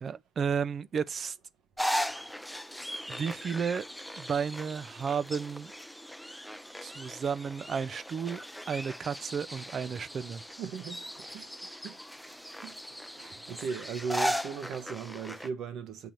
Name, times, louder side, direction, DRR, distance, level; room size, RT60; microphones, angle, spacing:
voice 1, 0.0-1.4 3.1-3.8 4.2-5.7 6.8-8.4 8.7-10.4, right 6 dB, 50° right, 0.5 m, -32 dB
sound 1, 1.8-15.5, equal, ahead, 0.5 m, -38 dB
voice 2, 10.6-11.1 11.3-12.0 12.5-16.1, right 6 dB, 80° right, 1.1 m, -38 dB
7.7 x 3.0 x 5.1 m
cardioid pair, 90°, 0 cm